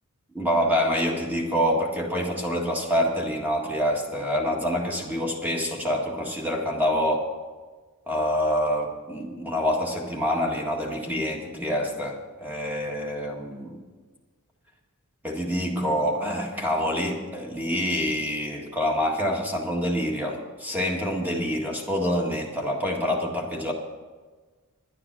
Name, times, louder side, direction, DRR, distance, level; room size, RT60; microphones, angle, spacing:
voice 1, 0.3-7.3 8.1-13.8 15.2-23.7, equal, 10° right, 0 dB, 1.8 m, -26 dB
11.0 x 10.0 x 6.1 m, 1.4 s
head